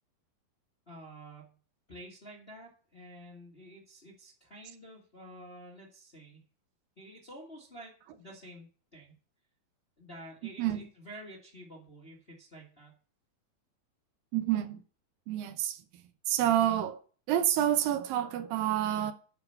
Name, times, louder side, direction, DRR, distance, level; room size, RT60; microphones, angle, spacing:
voice 1, 0.9-1.5 1.9-6.4 7.0-9.1 10.0-12.9, right 1 dB, 30° left, 1.0 m, -50 dB
voice 2, 14.3-14.8 15.3-15.8 16.3-17.0 17.3-19.1, right 11 dB, 80° right, 2.6 m, -28 dB
9.1 x 5.9 x 6.9 m
omnidirectional pair, 4.1 m